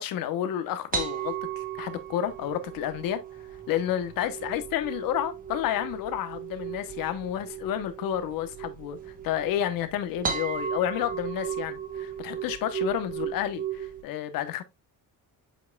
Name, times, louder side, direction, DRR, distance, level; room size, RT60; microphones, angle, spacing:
voice 1, 0.0-3.2 3.7-9.0 9.2-14.6, left 11 dB, 70° left, 1.0 m, -30 dB
sound 1, 0.9-14.0, right 8 dB, 25° right, 1.0 m, -36 dB
7.7 x 5.3 x 2.3 m
cardioid pair, 180°, 35 cm